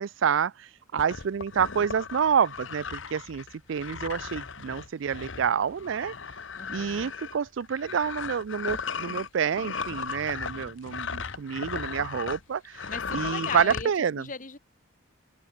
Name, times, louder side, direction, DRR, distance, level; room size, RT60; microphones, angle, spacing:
voice 1, 0.0-6.1 6.7-14.3, right 7 dB, 65° right, 0.4 m, -28 dB
sound 1, 1.0-12.4 12.7-13.9, left 5 dB, 70° left, 1.2 m, -36 dB
voice 2, 6.6-7.1 12.7-13.9 14.2-14.6, left 4 dB, 40° left, 2.0 m, -38 dB
open air
head